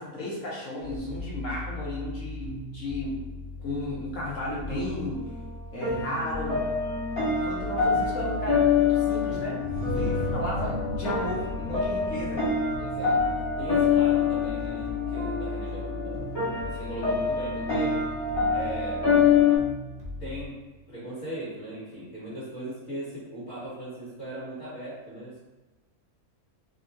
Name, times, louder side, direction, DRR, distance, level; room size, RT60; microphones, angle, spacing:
voice 1, 0.0-3.1 3.6-5.2 5.7-6.6 7.3-9.6 9.9-12.4, left 1 dB, 65° left, -5 dB, 1.1 m, -34 dB
sound 1, 0.8-20.5, left 2 dB, 50° right, 0.7 m, -39 dB
sound 2, 5.1-19.6, left 6 dB, 85° left, 1.5 m, -26 dB
sound 3, 9.6-15.1, equal, 70° right, 1.1 m, -36 dB
voice 2, 12.8-18.0 18.5-19.1 20.2-20.6 20.9-25.4, right 1 dB, 35° left, -12 dB, 1.6 m, -39 dB
3.6 x 2.1 x 2.6 m, 1.2 s
omnidirectional pair, 1.5 m